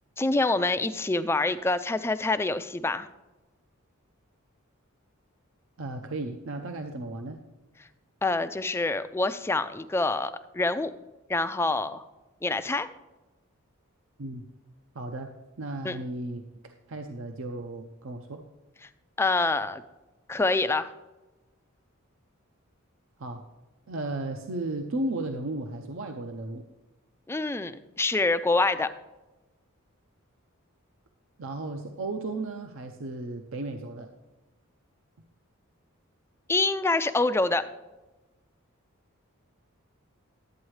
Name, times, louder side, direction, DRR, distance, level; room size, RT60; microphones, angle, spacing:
voice 1, 0.2-3.1 8.2-10.9 11.3-12.0 12.4-12.9 15.8-16.0 19.2-19.8 20.3-20.9 27.3-28.9 36.5-37.6, left 3 dB, 10° left, 11 dB, 0.3 m, -26 dB
voice 2, 5.8-7.4 14.2-14.4 14.9-18.4 23.2-23.4 23.9-26.6 31.4-34.1, right 2 dB, 65° right, 5 dB, 0.6 m, -35 dB
11.5 x 8.7 x 3.2 m, 1.1 s
head